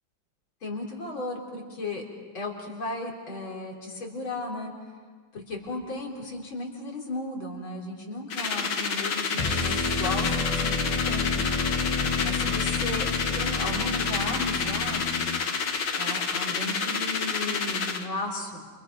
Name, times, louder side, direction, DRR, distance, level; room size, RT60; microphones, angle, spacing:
voice 1, 0.6-2.0 2.3-4.7 5.3-11.3 12.2-13.1 13.3-15.3 16.0-18.7, left 2 dB, 85° left, -1 dB, 4.6 m, -35 dB
sound 1, 8.3-18.0, left 5 dB, 65° left, 2.1 m, -29 dB
sound 2, 9.3-15.5, left 4 dB, 35° left, 0.5 m, -30 dB
29.5 x 29.0 x 5.3 m, 1.5 s
omnidirectional pair, 2.1 m